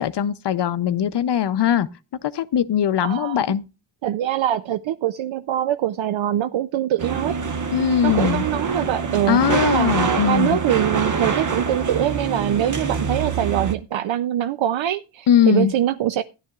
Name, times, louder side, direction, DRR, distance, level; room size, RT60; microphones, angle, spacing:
voice 1, 0.0-1.9 2.2-3.6 7.7-8.5 9.3-10.6 15.3-15.7, left 9 dB, 60° left, 0.6 m, -20 dB
voice 2, 3.0-3.4 4.0-7.4 8.0-16.2, right 11 dB, 70° right, 0.6 m, -23 dB
sound 1, 7.0-13.7, right 5 dB, 40° right, 1.1 m, -25 dB
13.5 x 10.5 x 2.3 m
wide cardioid pair, 100°, 48 cm